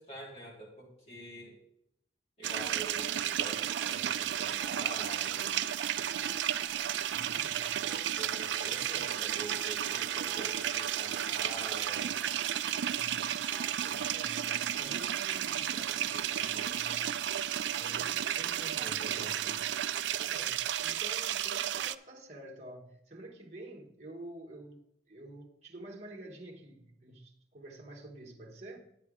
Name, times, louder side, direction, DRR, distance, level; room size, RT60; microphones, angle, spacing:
voice 1, 0.0-1.6 2.4-5.6 7.8-12.1 18.8-19.6, right 1 dB, 35° left, 3.4 m, -46 dB
sound 1, 2.4-21.9, right 10 dB, 90° right, 0.3 m, -33 dB
sound 2, 3.8-16.9, equal, 15° left, 4.4 m, -54 dB
voice 2, 7.1-7.9 12.9-13.5 13.8-17.3 17.7-19.8 20.3-28.8, right 1 dB, 40° right, 1.1 m, -49 dB
10.0 x 8.4 x 3.6 m
head